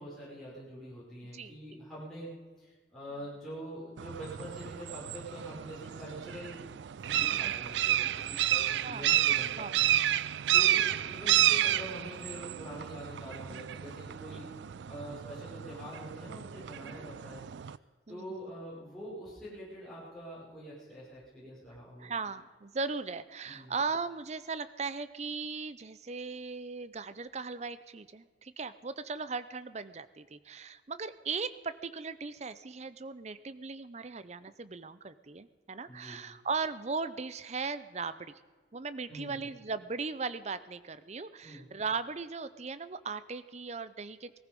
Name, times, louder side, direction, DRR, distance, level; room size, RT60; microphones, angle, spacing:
voice 1, 0.0-6.7 7.1-9.9 10.5-14.4 14.8-17.7 18.1-22.1 23.5-23.7 35.9-36.2 39.1-39.5 41.4-41.7, equal, ahead, -10 dB, 5.4 m, -45 dB
voice 2, 1.3-1.8 7.2-7.6 8.8-9.2 9.6-9.8 14.3-14.4 16.9-17.6 18.1-18.4 22.0-38.3 38.7-44.4, right 4 dB, 40° right, 14 dB, 0.6 m, -38 dB
sound 1, 4.0-17.8, right 12 dB, 75° right, 0.4 m, -31 dB
19.0 x 14.5 x 5.3 m, 1.5 s
head